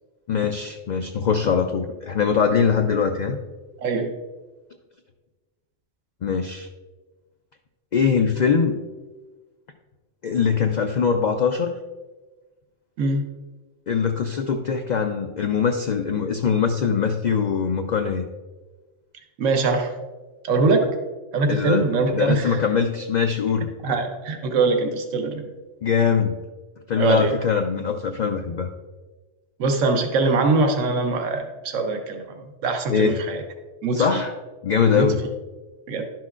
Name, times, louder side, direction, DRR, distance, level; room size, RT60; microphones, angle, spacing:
voice 1, 0.3-3.4 6.2-6.7 7.9-8.8 10.2-11.7 13.9-18.3 21.5-21.8 22.1-23.7 25.8-26.4 26.9-28.7 32.9-33.2 33.9-34.3 34.6-35.2, left 6 dB, 70° left, 6 dB, 0.4 m, -22 dB
voice 2, 3.8-4.1 13.0-13.2 19.4-19.9 20.4-20.9 21.3-22.6 23.8-25.5 27.0-27.3 29.6-32.2 32.6-33.4 33.8-34.2 34.9-35.1 35.9-36.0, right 3 dB, 90° right, 5 dB, 1.1 m, -22 dB
11.5 x 6.0 x 2.4 m, 1.2 s
omnidirectional pair, 1.3 m